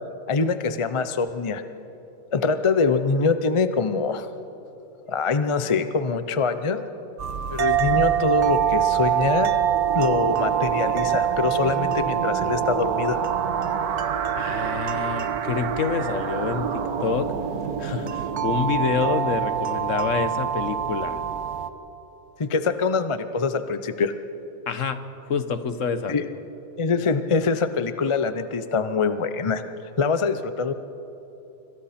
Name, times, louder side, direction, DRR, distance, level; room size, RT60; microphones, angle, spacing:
voice 1, 0.3-1.6 2.3-4.3 5.1-6.9 7.5-9.5 9.9-13.2 22.4-24.1 26.1-26.3 26.8-29.6 30.0-30.7, left 4 dB, 35° left, 10 dB, 0.5 m, -24 dB
sound 1, 7.2-21.7, right 10 dB, 55° right, 1.1 m, -26 dB
sound 2, 7.4-20.0, right 6 dB, 85° right, 1.6 m, -32 dB
voice 2, 14.3-17.3 17.8-21.2 24.7-26.1, left 5 dB, 60° left, 10 dB, 1.3 m, -27 dB
26.0 x 25.0 x 4.3 m, 2.9 s
omnidirectional pair, 1.6 m